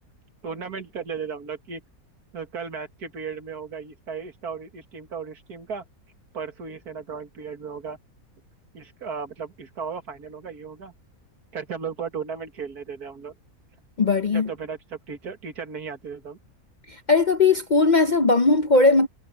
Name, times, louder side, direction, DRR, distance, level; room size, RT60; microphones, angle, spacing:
voice 1, 0.4-1.8 2.3-5.8 6.3-8.0 8.7-10.9 11.5-13.3 14.3-16.4, right 6 dB, 80° right, 2.4 m, -35 dB
voice 2, 14.0-14.5 16.9-19.1, left 3 dB, 45° left, 0.6 m, -19 dB
omnidirectional pair, 1.6 m